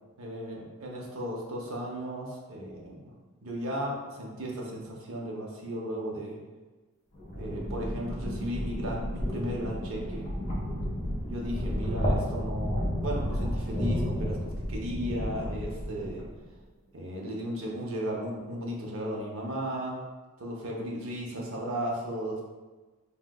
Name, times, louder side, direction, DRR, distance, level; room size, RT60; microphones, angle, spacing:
voice 1, 0.2-3.1 3.4-6.4 7.4-10.3 11.3-16.2 16.9-20.0 20.4-22.4, equal, 60° right, -2 dB, 0.6 m, -35 dB
sound 1, 7.1-16.4, equal, 30° left, 0.8 m, -32 dB
3.4 x 2.6 x 2.2 m, 1.3 s
head